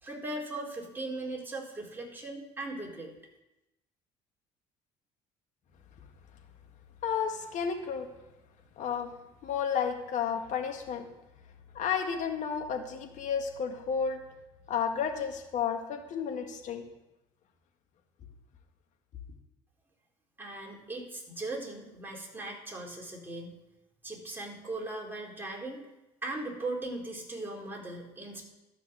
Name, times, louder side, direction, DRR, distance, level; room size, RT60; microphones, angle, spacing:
voice 1, 0.0-3.1 20.4-23.6 24.0-25.8 26.2-28.4, right 2 dB, 15° right, -2 dB, 4.2 m, -38 dB
voice 2, 7.0-8.1 8.8-9.1 9.4-11.1 11.8-14.2 14.7-16.8, left 7 dB, 60° left, 5 dB, 1.8 m, -32 dB
12.0 x 5.9 x 7.6 m, 0.97 s
hypercardioid pair, 65°, 14 cm